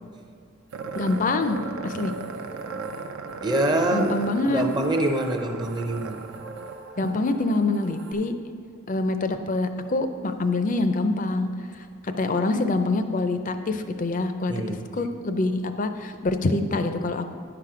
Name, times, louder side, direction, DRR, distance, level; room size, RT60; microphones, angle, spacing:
sound 1, 0.7-8.1, right 2 dB, 50° right, 1.1 m, -44 dB
sound 2, 0.7-7.1, right 5 dB, 75° right, 0.5 m, -37 dB
voice 1, 1.0-2.1 3.9-4.6 7.0-8.3 8.9-11.5 12.0-17.3, left 2 dB, 35° left, 8 dB, 0.5 m, -25 dB
voice 2, 3.4-4.2 4.5-6.2 14.5-14.9, right 1 dB, 20° right, 3 dB, 0.5 m, -25 dB
10.5 x 5.9 x 4.9 m, 2.4 s
head